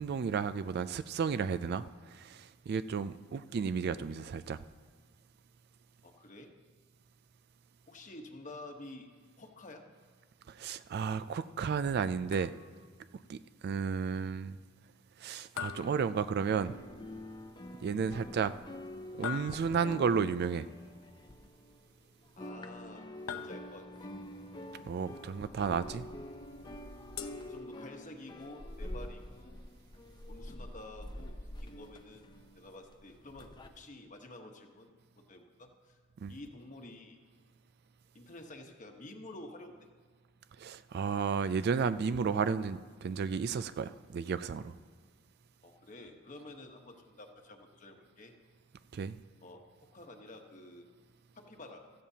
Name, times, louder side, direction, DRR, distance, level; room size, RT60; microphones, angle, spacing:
voice 1, 0.0-4.6 10.5-12.5 13.3-14.6 15.2-16.8 17.8-18.5 19.2-20.7 24.9-26.0 36.2-36.3 40.6-44.8 48.9-49.2, right 6 dB, 50° right, 14 dB, 0.3 m, -33 dB
voice 2, 6.0-6.5 7.9-9.1 9.4-9.9 17.6-17.7 22.4-23.0 23.3-24.1 27.5-29.6 30.3-32.2 32.6-34.9 35.2-36.0 36.3-37.2 38.1-39.8 45.6-48.3 49.4-49.7 49.9-50.9 51.3-51.9, left 2 dB, 40° left, 4 dB, 1.2 m, -50 dB
sound 1, 12.3-12.9 15.6-16.8 19.2-20.1 23.3-24.1 27.2-28.2, left 8 dB, 75° left, 0.7 m, -43 dB
sound 2, 16.6-22.0 22.2-33.7, left 1 dB, 20° left, 0.6 m, -47 dB
Bird, 25.4-27.8, equal, 10° right, 0.9 m, -54 dB
16.0 x 14.0 x 2.8 m, 1.5 s
head